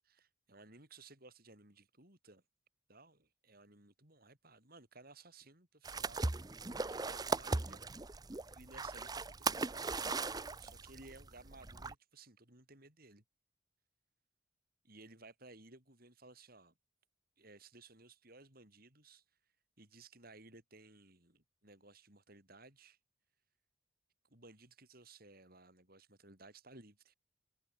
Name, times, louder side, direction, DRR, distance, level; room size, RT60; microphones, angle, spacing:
voice 1, 0.1-2.4 2.9-7.8 8.5-13.2 14.8-16.7 17.4-19.2 19.8-23.0 24.3-27.1, right 3 dB, 50° right, 6.7 m, -58 dB
sound 1, 5.8-11.9, right 3 dB, 20° right, 0.7 m, -38 dB
head